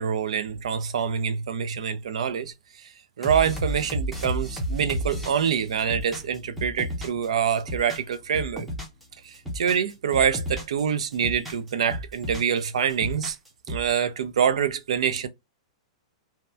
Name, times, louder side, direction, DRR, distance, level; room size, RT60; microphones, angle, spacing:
voice 1, 0.0-2.5 3.2-8.7 9.2-13.4 13.7-15.3, right 7 dB, 75° right, 0.6 m, -25 dB
sound 1, 3.2-7.3 7.6-9.0 9.3-10.8 11.1-12.6 12.9-13.9, equal, ahead, 0.6 m, -32 dB
2.8 x 2.2 x 2.2 m
supercardioid pair, 170°, 3 cm